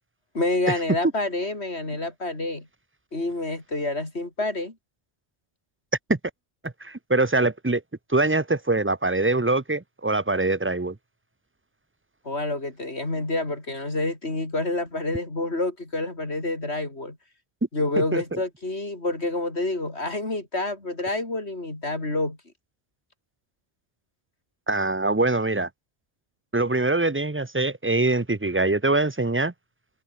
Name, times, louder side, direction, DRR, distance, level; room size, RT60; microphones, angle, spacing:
voice 1, 0.3-2.7 3.1-4.7 12.2-17.2 17.7-22.4, left 2 dB, 85° left, 5.0 m, -28 dB
voice 2, 6.6-7.8 8.1-11.0 18.1-18.4 24.7-25.7 26.5-29.5, right 2 dB, 15° right, 0.7 m, -23 dB
omnidirectional pair, 1.1 m